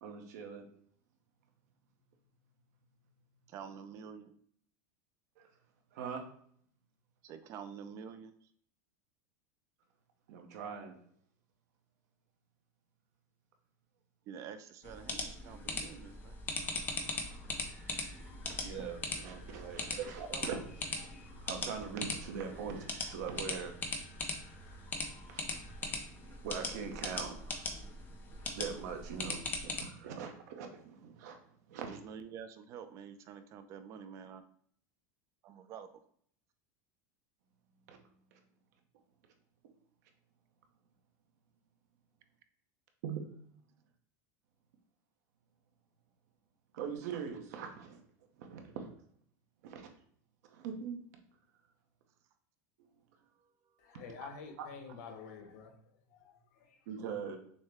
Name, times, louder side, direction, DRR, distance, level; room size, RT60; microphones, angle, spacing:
voice 1, 0.0-0.7 5.4-5.5 5.9-6.3 10.3-11.0 18.6-20.6 21.0-21.1 21.4-23.7 25.3-25.4 25.8-26.2 26.4-27.7 28.5-31.4 31.7-32.0 37.9-38.0 43.0-43.2 46.7-48.0 48.4-48.9 49.6-49.9 50.4-51.0 56.9-57.4, right 6 dB, 75° right, 4 dB, 0.9 m, -42 dB
voice 2, 3.5-4.3 7.2-8.3 14.3-16.4 20.3-20.4 31.9-34.4 35.4-36.0 53.4-53.5, right 7 dB, 35° right, 10 dB, 0.4 m, -48 dB
sound 1, 14.8-29.8, left 3 dB, 20° left, 0.6 m, -40 dB
sound 2, 16.5-26.1, equal, 40° left, 1.3 m, -58 dB
voice 3, 53.8-56.9, left 5 dB, 70° left, 4 dB, 1.0 m, -49 dB
6.3 x 2.1 x 3.4 m, 0.63 s
supercardioid pair, 160°, 9 cm